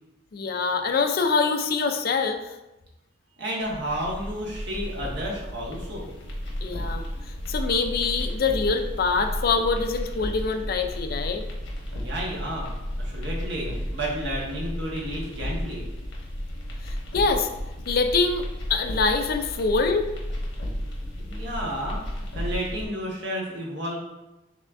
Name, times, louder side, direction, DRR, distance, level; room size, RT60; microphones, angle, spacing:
voice 1, 0.3-2.5 6.6-7.0 7.5-11.4 16.9-17.5 17.9-18.4 18.7-20.1, left 4 dB, 55° left, 6 dB, 0.4 m, -24 dB
voice 2, 3.4-6.1 11.9-12.7 13.0-15.8 21.2-24.0, equal, 65° right, -3 dB, 1.3 m, -32 dB
sound 1, 3.6-22.8, equal, 80° left, 1.1 m, -33 dB
5.4 x 3.6 x 2.5 m, 0.97 s
head